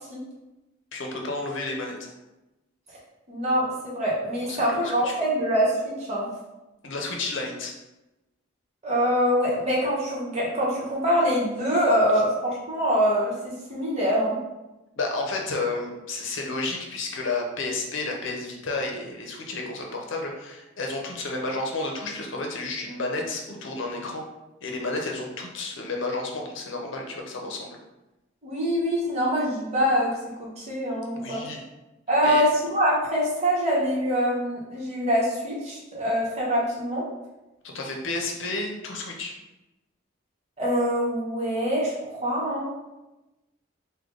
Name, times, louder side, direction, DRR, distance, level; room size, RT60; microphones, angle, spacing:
voice 1, 0.9-2.0 4.5-5.1 6.8-7.7 15.0-24.2 24.6-27.8 31.2-31.6 32.2-32.5 37.6-39.3, left 3 dB, 70° left, 1 dB, 0.7 m, -31 dB
voice 2, 3.3-6.3 8.8-13.3 13.7-14.4 28.4-30.1 30.4-31.4 32.1-37.1 40.6-42.7, equal, 35° right, -6 dB, 1.0 m, -24 dB
3.3 x 2.2 x 3.7 m, 1.0 s
head